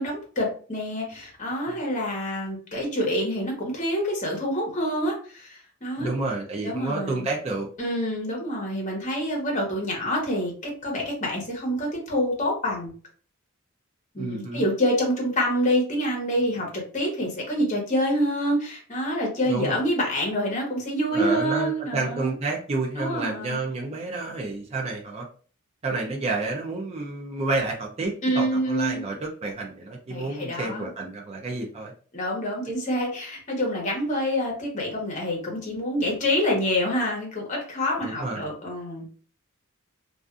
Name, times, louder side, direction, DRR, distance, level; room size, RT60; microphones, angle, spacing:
voice 1, 0.0-6.1 6.6-7.3 7.8-12.9 14.1-22.3 23.0-23.6 28.2-29.0 30.1-30.9 32.1-39.1, equal, 35° left, -1 dB, 1.0 m, -27 dB
voice 2, 6.0-7.7 14.2-14.6 19.5-19.8 21.1-25.3 25.8-31.9 38.0-38.5, right 3 dB, 30° right, 0 dB, 0.4 m, -30 dB
2.4 x 2.4 x 2.4 m, 0.40 s
head